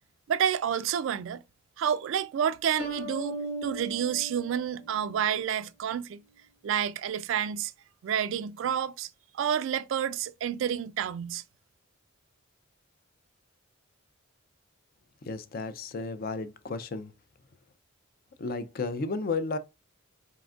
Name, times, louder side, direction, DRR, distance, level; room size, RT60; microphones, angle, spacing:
voice 1, 0.3-1.4 1.8-6.2 6.6-7.7 8.0-9.1 9.3-11.4, right 8 dB, 65° right, 0.3 m, -29 dB
sound 1, 2.8-5.4, right 1 dB, 70° left, 0.9 m, -38 dB
voice 2, 15.2-17.1 18.4-19.6, left 3 dB, 45° left, 0.4 m, -33 dB
4.1 x 3.7 x 2.3 m
head